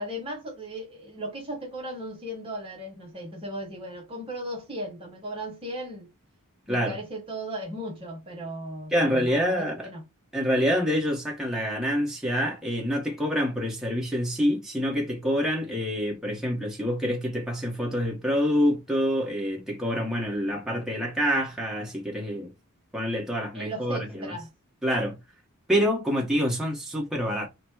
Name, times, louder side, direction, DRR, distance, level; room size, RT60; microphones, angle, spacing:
voice 1, 0.0-6.1 6.7-10.1 23.5-24.5, equal, 25° right, 0.9 m, -36 dB
voice 2, 8.9-9.9 10.3-22.5 22.9-24.3 24.8-25.2 25.7-27.5, equal, ahead, 1.1 m, -26 dB
4.0 x 2.1 x 4.5 m
head